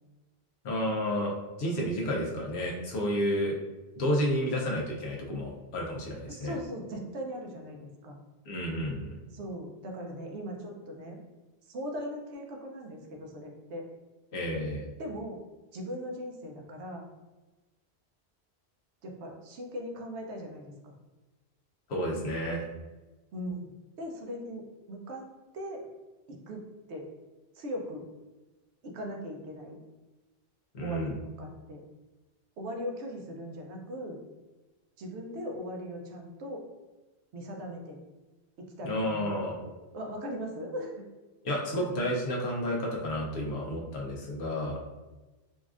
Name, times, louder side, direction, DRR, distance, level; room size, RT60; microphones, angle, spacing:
voice 1, 0.6-3.5 4.0-6.6 8.5-9.1 14.3-14.8 21.9-22.6 30.7-31.2 38.8-39.6 41.4-44.8, equal, 75° left, -2 dB, 0.9 m, -31 dB
voice 2, 6.3-8.2 9.3-11.2 11.6-13.9 15.0-15.4 15.7-17.1 19.0-20.9 23.3-25.3 25.5-25.9 26.3-27.1 27.6-28.1 28.8-29.8 30.8-31.8 32.6-34.2 35.0-36.6 37.3-38.0 38.6-39.3 39.6-41.0, equal, 80° right, 2 dB, 0.9 m, -39 dB
3.9 x 2.4 x 2.4 m, 1.1 s
omnidirectional pair, 1.1 m